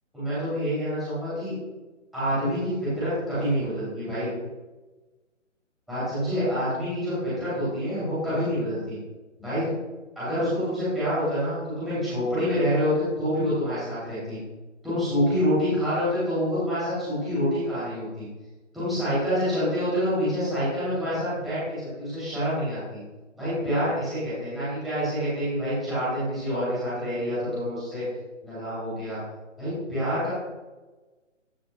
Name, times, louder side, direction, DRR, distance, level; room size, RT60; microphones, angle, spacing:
voice 1, 0.1-1.5 2.1-4.3 5.9-9.0 9.4-9.7 10.2-14.4 14.8-18.3 18.7-23.0 23.3-28.0 28.4-29.2 29.6-30.3, equal, ahead, -15 dB, 2.7 m, -27 dB
14.0 x 5.7 x 2.2 m, 1.2 s
hypercardioid pair, 165°, 38 cm